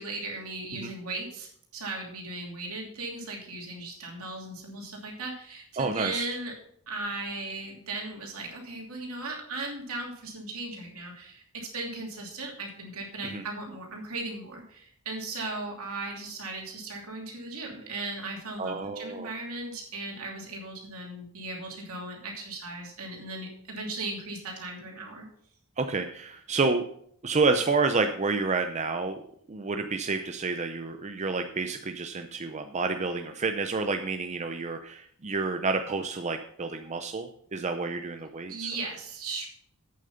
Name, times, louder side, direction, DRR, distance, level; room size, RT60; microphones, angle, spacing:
voice 1, 0.0-6.5 6.9-25.2 38.5-39.5, right 2 dB, 75° right, 0 dB, 2.9 m, -37 dB
voice 2, 5.8-6.3 13.3-13.4 18.6-19.3 25.8-26.8 27.2-29.2 29.5-38.7, right 4 dB, 30° right, 6 dB, 0.6 m, -29 dB
8.5 x 7.5 x 5.6 m, 0.64 s
head